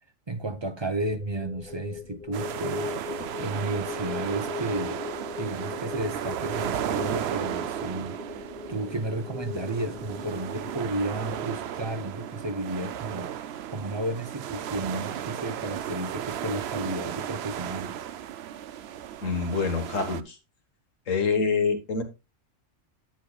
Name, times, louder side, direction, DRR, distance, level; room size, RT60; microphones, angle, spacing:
voice 1, 0.3-2.9 3.4-5.0 5.4-8.2 8.7-13.3 13.7-18.0, right 2 dB, 25° right, 0.6 m, -32 dB
sound 1, 1.0-13.2, left 5 dB, 35° left, 1.8 m, -40 dB
sound 2, 2.3-20.2, right 10 dB, 65° right, 0.8 m, -35 dB
voice 2, 19.2-20.4 21.1-22.0, left 5 dB, 85° left, 1.9 m, -26 dB
10.0 x 8.5 x 2.4 m
omnidirectional pair, 1.3 m